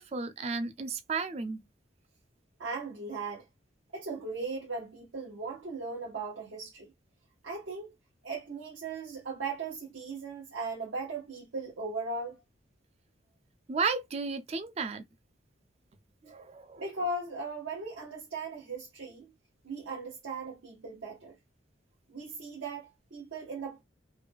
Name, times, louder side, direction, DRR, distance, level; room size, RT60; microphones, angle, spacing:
voice 1, 0.0-1.6 13.7-15.0 16.2-16.8, right 4 dB, 35° right, 0.4 m, -33 dB
voice 2, 2.6-3.5 3.9-6.9 7.4-7.9 8.2-12.4 16.8-19.2 19.6-21.4 22.1-23.8, right 3 dB, 80° right, 0.9 m, -38 dB
3.2 x 2.2 x 3.4 m
head